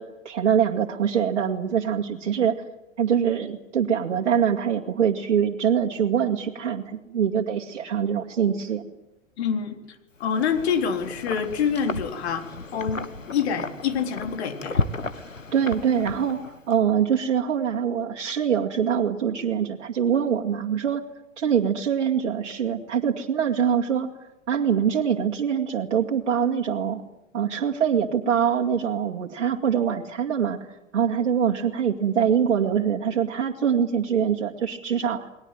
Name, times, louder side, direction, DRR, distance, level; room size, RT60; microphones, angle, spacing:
voice 1, 0.0-2.6 3.0-8.8 15.5-16.4 16.7-21.0 21.4-24.1 24.5-27.0 27.3-30.6 30.9-35.3, right 8 dB, 65° right, 0 dB, 2.5 m, -24 dB
voice 2, 9.4-9.8 10.2-14.8, left 7 dB, 55° left, 6 dB, 3.9 m, -26 dB
Wind, 10.2-16.7, left 3 dB, 85° left, 1.6 m, -33 dB
29.5 x 21.5 x 9.2 m, 0.91 s
figure-of-eight pair, 95°, 38 cm